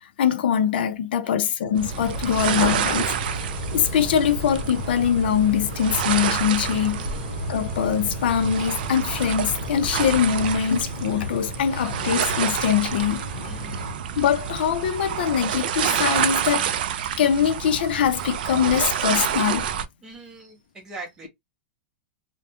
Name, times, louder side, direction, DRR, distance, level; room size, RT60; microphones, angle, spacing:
voice 1, 0.0-3.1 3.7-7.0 7.5-13.2 14.2-16.7 17.2-19.7, left 8 dB, 60° left, 0.5 m, -23 dB
sound 1, 1.8-13.9, left 3 dB, 40° left, 1.0 m, -36 dB
sound 2, 1.8-19.9, right 9 dB, 50° right, 0.3 m, -28 dB
sound 3, 2.1-10.6, right 3 dB, 30° right, 0.9 m, -36 dB
voice 2, 7.0-7.3 13.5-13.9 20.0-21.3, right 3 dB, 10° right, 0.6 m, -42 dB
2.2 x 2.1 x 2.8 m
supercardioid pair, 180°, 6 cm